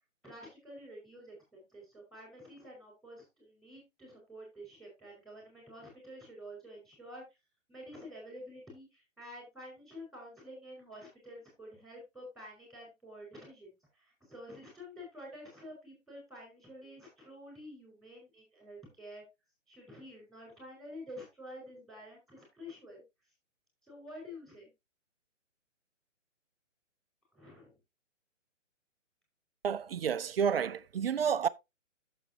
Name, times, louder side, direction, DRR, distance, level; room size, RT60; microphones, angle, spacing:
voice 1, 0.2-7.2 7.7-19.2 19.7-23.0 23.9-24.7 27.3-27.7, equal, ahead, 5.0 m, -49 dB
voice 2, 29.6-31.5, right 7 dB, 50° right, 0.5 m, -30 dB
10.5 x 7.2 x 2.8 m
figure-of-eight pair, 140°, 38 cm